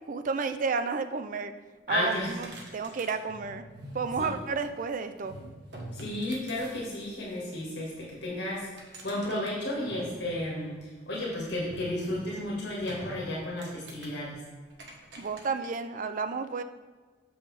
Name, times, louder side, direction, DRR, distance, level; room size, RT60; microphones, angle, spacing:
voice 1, 0.1-1.5 1.9-2.4 2.7-3.6 3.9-5.3 15.2-16.6, right 4 dB, 45° right, 9 dB, 0.4 m, -31 dB
voice 2, 1.9-2.4 2.6-2.7 4.2-4.3 5.9-8.7 9.0-14.4, left 1 dB, 65° left, -4 dB, 1.9 m, -33 dB
sound 1, 2.4-4.8 5.2-7.4 8.5-10.7 11.6-13.2 13.6-14.2 14.7-15.7, equal, 65° right, 1.4 m, -45 dB
7.4 x 6.2 x 3.4 m, 1.4 s
head